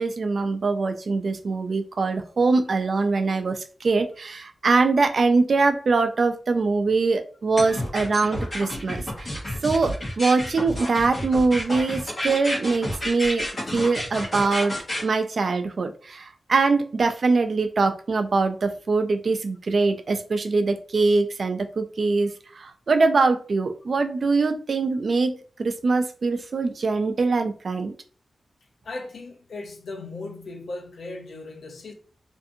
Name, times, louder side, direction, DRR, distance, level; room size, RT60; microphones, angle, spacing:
voice 1, 0.0-9.3 9.6-25.3 25.6-27.9, right 3 dB, 55° right, 0.4 m, -23 dB
sound 1, 7.6-15.0, left 1 dB, 45° left, 1.0 m, -30 dB
voice 2, 28.8-31.9, left 2 dB, 75° left, 0.6 m, -37 dB
2.6 x 2.5 x 2.6 m
wide cardioid pair, 105°, 0 cm